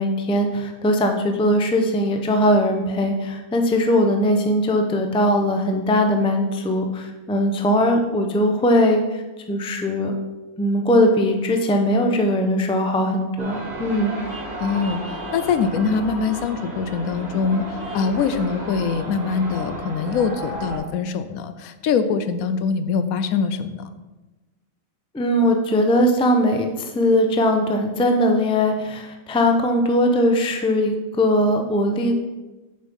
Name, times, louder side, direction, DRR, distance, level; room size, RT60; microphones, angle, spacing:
voice 1, 0.0-9.2 9.5-10.1 10.6-14.1 25.1-32.1, left 1 dB, 10° left, 4 dB, 0.4 m, -20 dB
sound 1, 13.4-20.8, right 1 dB, 45° right, 2.3 m, -33 dB
voice 2, 14.6-23.9, left 5 dB, 75° left, 10 dB, 1.0 m, -23 dB
7.1 x 5.3 x 5.3 m, 1.1 s
omnidirectional pair, 1.5 m